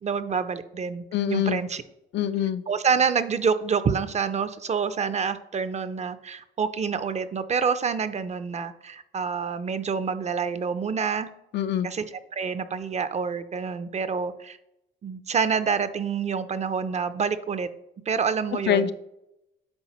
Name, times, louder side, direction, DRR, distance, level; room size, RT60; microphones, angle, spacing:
voice 1, 0.0-1.8 2.7-11.3 11.8-14.6 15.0-17.7 18.1-18.9, right 6 dB, 35° right, 12 dB, 0.5 m, -27 dB
voice 2, 1.1-1.6 2.1-2.6 11.5-11.9 18.7-18.9, left 9 dB, 65° left, 12 dB, 0.4 m, -24 dB
9.7 x 3.9 x 3.0 m, 0.85 s
cardioid pair, 90°, 20 cm